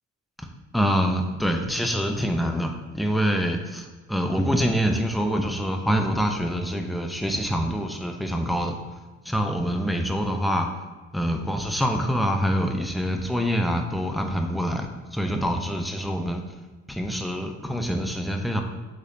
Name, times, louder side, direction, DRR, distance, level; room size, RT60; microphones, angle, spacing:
voice 1, 0.7-8.8 9.3-10.7 11.1-14.9 15.1-16.4 16.9-18.6, equal, ahead, 3 dB, 0.5 m, -25 dB
6.6 x 3.2 x 2.5 m, 1.3 s
cardioid pair, 90°, 30 cm